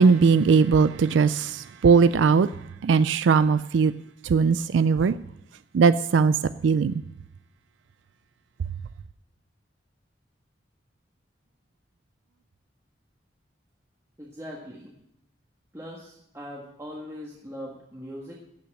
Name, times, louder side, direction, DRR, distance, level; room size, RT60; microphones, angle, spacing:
voice 1, 0.0-2.5 2.8-3.9 4.2-5.2 5.7-6.4 6.6-7.0, right 5 dB, 85° right, 0.4 m, -19 dB
voice 2, 14.2-14.9 15.7-18.3, equal, 15° right, 1.5 m, -40 dB
15.0 x 5.9 x 8.7 m
head